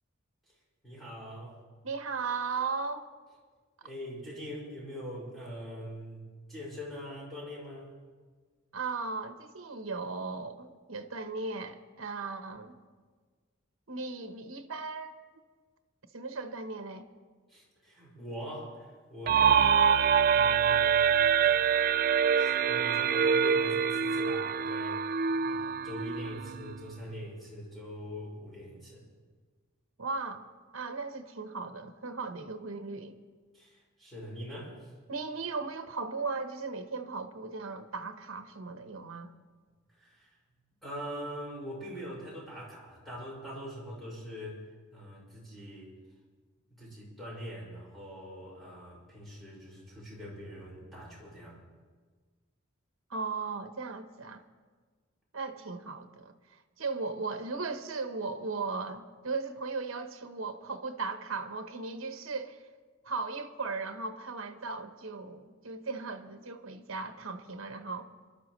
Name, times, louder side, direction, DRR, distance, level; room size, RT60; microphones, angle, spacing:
voice 1, 0.8-1.6 3.8-7.9 17.5-21.2 22.4-25.1 25.4-29.0 33.5-34.9 39.9-40.3 40.8-44.6 44.9-45.9 46.8-51.6, equal, ahead, 5.7 m, -43 dB
voice 2, 1.8-3.1 8.7-12.8 13.9-15.2 16.1-17.1 30.0-30.5 30.7-33.1 35.1-39.3 53.1-54.4 55.3-62.6 63.0-68.1, right 4 dB, 75° right, 1.0 m, -37 dB
sound 1, 19.3-26.9, right 7 dB, 45° right, 0.3 m, -25 dB
26.5 x 12.5 x 3.1 m
head